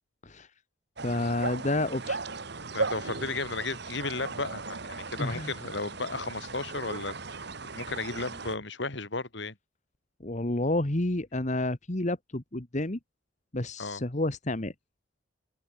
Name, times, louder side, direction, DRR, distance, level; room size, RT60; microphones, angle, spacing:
voice 1, 1.0-2.2 5.2-5.5 10.2-13.0 13.5-14.7, left 1 dB, 40° left, 1.5 m, -30 dB
sound 1, 1.0-8.6, right 3 dB, 55° right, 1.7 m, -37 dB
voice 2, 2.7-7.4 7.7-9.6 13.8-14.0, left 3 dB, 65° left, 2.8 m, -34 dB
open air
head